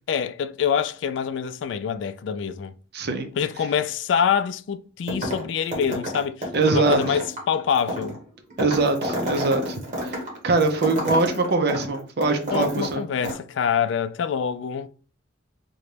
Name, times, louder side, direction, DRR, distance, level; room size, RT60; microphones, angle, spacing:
voice 1, 0.1-2.7 3.4-8.2 12.5-14.9, left 7 dB, 75° left, 0.3 m, -25 dB
voice 2, 2.9-3.3 6.5-7.0 8.6-10.1 10.4-13.0, right 3 dB, 60° right, 0.5 m, -22 dB
sound 1, 5.1-5.5 5.7-13.0 13.2-13.3, equal, 40° right, 1.3 m, -30 dB
3.9 x 2.2 x 3.2 m
head